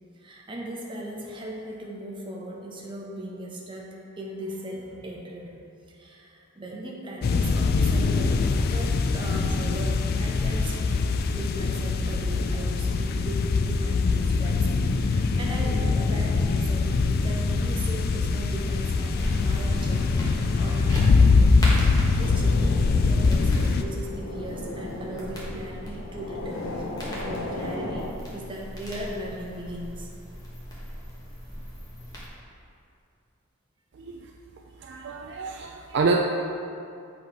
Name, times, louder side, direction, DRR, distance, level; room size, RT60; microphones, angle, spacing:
voice 1, 0.2-20.2 20.6-26.9 27.2-30.1 30.7-30.8, right 1 dB, 25° right, -3 dB, 0.9 m, -38 dB
sound 1, 7.2-23.8, left 4 dB, 45° left, 0.3 m, -23 dB
sound 2, 19.2-32.3, equal, 20° left, 1.2 m, -38 dB
sound 3, 22.1-28.1, left 2 dB, 65° left, 0.7 m, -36 dB
voice 2, 33.9-34.3 34.8-36.2, right 4 dB, 55° right, 1 dB, 0.3 m, -27 dB
7.2 x 4.0 x 4.6 m, 2.5 s
head